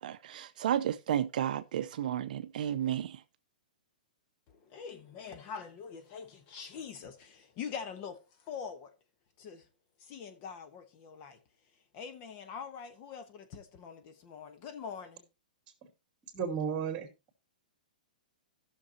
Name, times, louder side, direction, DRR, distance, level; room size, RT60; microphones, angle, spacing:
voice 1, 0.0-3.2, right 10 dB, 60° right, 0.5 m, -32 dB
voice 2, 4.5-8.9 9.4-9.7 10.0-11.4 11.9-15.3, left 6 dB, 35° left, 1.1 m, -44 dB
voice 3, 16.3-17.1, right 7 dB, 25° right, 2.5 m, -33 dB
16.5 x 6.5 x 2.9 m
hypercardioid pair, 145°, 5 cm